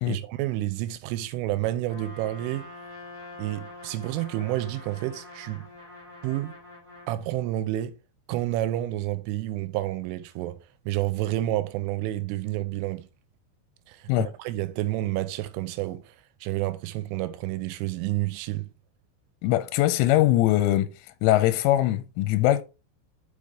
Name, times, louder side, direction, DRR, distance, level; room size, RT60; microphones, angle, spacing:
voice 1, 0.1-2.7 3.4-5.7 6.2-6.5 7.1-8.0 8.3-10.6 10.9-13.1 13.9-16.2 16.4-18.7, right 15 dB, 85° right, 3.0 m, -29 dB
Trumpet, 1.9-7.1, left 2 dB, 30° right, 0.6 m, -45 dB
voice 2, 19.4-20.9 21.2-22.6, left 14 dB, 85° left, 3.0 m, -22 dB
6.6 x 5.1 x 3.5 m
omnidirectional pair, 5.8 m